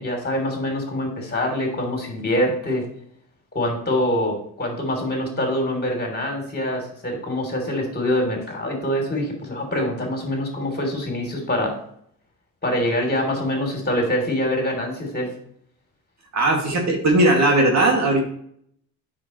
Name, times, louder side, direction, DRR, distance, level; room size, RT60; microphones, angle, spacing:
voice 1, 0.0-2.8 3.5-11.8 12.6-15.3, left 1 dB, 25° left, 2 dB, 3.2 m, -25 dB
voice 2, 16.3-18.2, right 2 dB, 45° right, 1 dB, 2.1 m, -18 dB
8.1 x 6.1 x 3.0 m, 0.65 s
cardioid pair, 105°, 39 cm